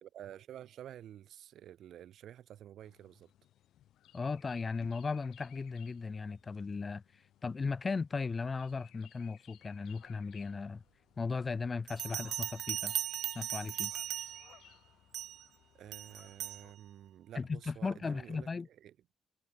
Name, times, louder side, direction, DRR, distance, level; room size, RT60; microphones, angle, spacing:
voice 1, 0.0-3.3 15.7-19.0, right 11 dB, 70° right, 2.6 m, -50 dB
sound 1, 2.8-16.7, left 12 dB, 90° left, 5.8 m, -62 dB
voice 2, 4.1-7.0 7.4-10.8 11.2-13.0 13.3-13.9 17.3-18.7, left 4 dB, 30° left, 1.2 m, -36 dB
Bell, 11.9-14.6 15.1-15.4 15.9-16.6, right 12 dB, 90° right, 0.5 m, -38 dB
cardioid pair, 140°, 0 cm